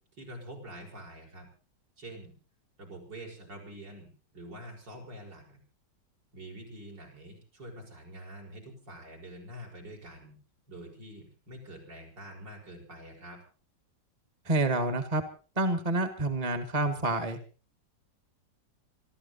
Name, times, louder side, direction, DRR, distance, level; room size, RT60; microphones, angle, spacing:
voice 1, 0.2-1.5 2.0-2.3 2.8-5.6 6.3-10.4 10.7-13.4, right 1 dB, 70° right, 0 dB, 6.9 m, -46 dB
voice 2, 14.4-15.2 15.6-17.4, right 2 dB, 20° right, 9 dB, 1.6 m, -28 dB
26.5 x 13.5 x 4.1 m, 0.37 s
omnidirectional pair, 2.0 m